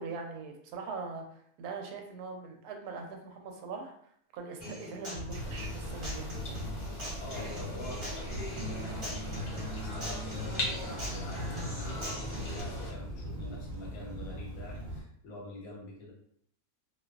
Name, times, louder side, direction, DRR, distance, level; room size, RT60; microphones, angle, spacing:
voice 1, 0.0-3.9 4.3-6.6, right 4 dB, 90° right, 3 dB, 1.1 m, -41 dB
Human voice / Acoustic guitar, 4.6-12.6, left 1 dB, 20° right, 1.0 m, -41 dB
sound 1, 5.1-15.0, right 1 dB, 55° right, 0.8 m, -41 dB
sound 2, 5.3-12.9, left 1 dB, 60° left, 1.0 m, -41 dB
voice 2, 7.2-16.1, left 1 dB, 80° left, -2 dB, 1.2 m, -46 dB
2.5 x 2.3 x 2.3 m, 0.66 s
omnidirectional pair, 1.6 m